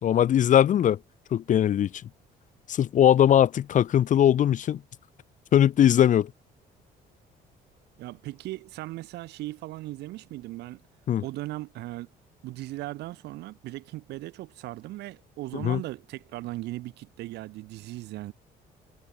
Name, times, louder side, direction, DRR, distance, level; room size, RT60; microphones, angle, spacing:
voice 1, 0.0-1.0 1.3-1.9 2.7-4.8 5.5-6.3 11.1-11.2 15.5-15.8, left 10 dB, 50° left, 0.9 m, -20 dB
voice 2, 8.0-10.8 11.2-12.1 12.4-18.3, right 17 dB, 80° right, 2.2 m, -38 dB
cardioid pair, 110°, 17 cm